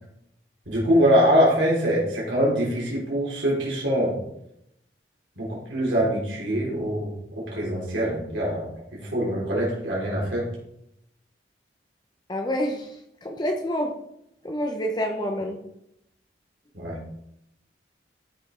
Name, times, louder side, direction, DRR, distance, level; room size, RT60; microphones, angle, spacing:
voice 1, 0.7-4.2 5.4-8.7 8.9-10.5 16.7-17.0, equal, 85° right, -5 dB, 3.3 m, -23 dB
voice 2, 12.3-13.9 14.4-15.6, equal, 25° left, 3 dB, 0.8 m, -28 dB
13.0 x 5.2 x 3.8 m, 0.78 s
head